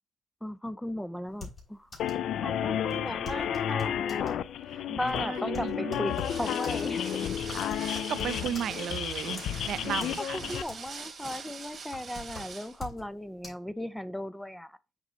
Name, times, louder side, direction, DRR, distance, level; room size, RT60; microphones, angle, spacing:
voice 1, 0.4-1.9 2.4-4.4 4.9-7.3 8.7-8.9 9.9-14.8, left 1 dB, 5° left, 0.5 m, -37 dB
sound 1, 1.3-2.3 2.5-2.6 2.9-4.4 4.9-9.0 9.4-10.2 10.5-11.1 11.5-13.1 13.4-13.5, left 3 dB, 35° left, 3.5 m, -44 dB
sound 2, 2.0-10.6, left 9 dB, 75° left, 0.4 m, -32 dB
voice 2, 5.1-6.1 7.8-10.4, right 9 dB, 70° right, 0.5 m, -35 dB
sound 3, 6.1-12.8, right 5 dB, 45° right, 2.0 m, -43 dB
6.1 x 5.0 x 3.0 m
cardioid pair, 90°, 0 cm